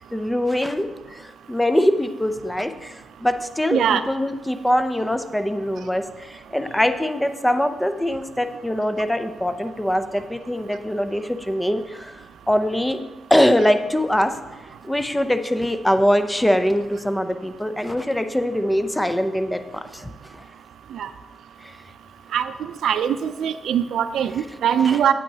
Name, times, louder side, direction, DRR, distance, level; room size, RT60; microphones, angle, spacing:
voice 1, 0.1-12.2 12.5-13.0 13.3-14.3 14.8-20.4 21.6-21.7 24.8-25.0, equal, 5° left, 9 dB, 0.5 m, -23 dB
voice 2, 3.7-4.0 20.9-21.1 22.3-22.5 22.8-25.1, right 9 dB, 85° right, 12 dB, 0.4 m, -21 dB
8.8 x 8.4 x 2.8 m, 1.2 s
cardioid pair, 115°, 0 cm